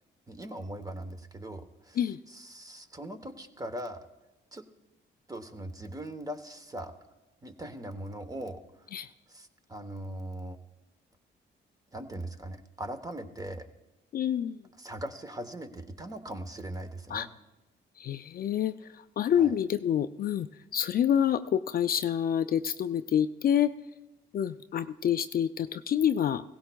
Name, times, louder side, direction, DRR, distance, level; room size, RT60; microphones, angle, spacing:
voice 1, 0.3-2.0 2.3-4.1 4.5-4.7 5.3-6.9 7.4-8.6 9.3-10.6 11.9-13.7 14.8-17.3 19.4-19.5, right 1 dB, 20° right, 9 dB, 0.9 m, -40 dB
voice 2, 14.1-14.6 17.1-17.3 18.0-20.5 20.7-23.7 24.3-26.4, left 9 dB, 50° left, 11 dB, 0.4 m, -27 dB
17.0 x 15.5 x 2.3 m, 1.0 s
cardioid pair, 90°, 20 cm